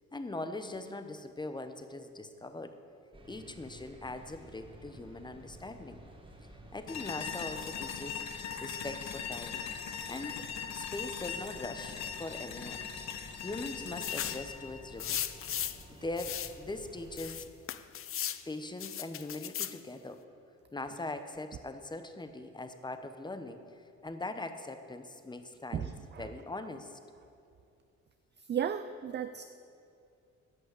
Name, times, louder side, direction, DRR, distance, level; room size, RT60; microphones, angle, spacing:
voice 1, 0.1-2.8 3.2-6.0 6.7-8.2 8.6-9.6 10.1-10.4 10.7-12.9 13.4-15.2 15.9-17.5 18.5-20.2 20.7-23.6 24.0-25.9 26.2-27.0, left 2 dB, 15° left, 8 dB, 0.9 m, -41 dB
sound 1, 3.1-17.3, right 1 dB, 15° right, 1.7 m, -53 dB
sound 2, 6.9-15.9, left 7 dB, 65° left, 1.0 m, -40 dB
sound 3, 14.0-14.5 15.0-15.8 16.2-16.5 17.2-18.4 18.8-19.8, left 10 dB, 45° left, 0.5 m, -36 dB
voice 2, 25.7-26.3 28.5-29.4, right 8 dB, 35° right, 10 dB, 0.4 m, -34 dB
11.0 x 6.2 x 8.2 m, 2.5 s
cardioid pair, 90°, 30 cm